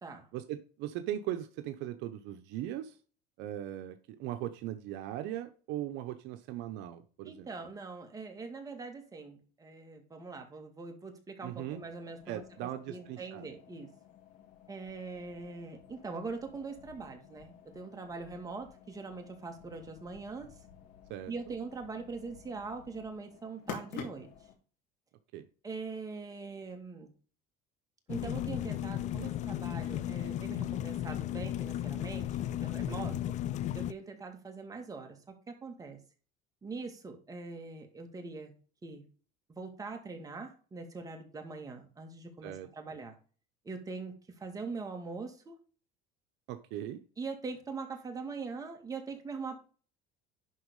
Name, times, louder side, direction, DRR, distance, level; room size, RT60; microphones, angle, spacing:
voice 1, 0.3-3.0 3.4-7.5 11.4-11.8 12.3-13.5 21.1-21.3 25.3-25.5 32.8-33.2 42.4-42.7 46.5-47.0, right 12 dB, 70° right, 8 dB, 0.9 m, -39 dB
voice 2, 7.3-12.4 12.9-13.9 14.7-20.5 21.3-24.3 25.6-27.1 28.1-33.1 33.7-36.0 36.6-38.5 38.8-39.0 39.5-43.2 43.6-45.6 47.2-49.6, right 4 dB, 20° right, 3 dB, 2.2 m, -42 dB
sound 1, 11.7-24.5, left 8 dB, 70° left, 3.0 m, -51 dB
sound 2, 28.1-33.9, left 12 dB, 40° left, 0.4 m, -35 dB
11.5 x 4.1 x 5.3 m, 0.39 s
cardioid pair, 140°, 18 cm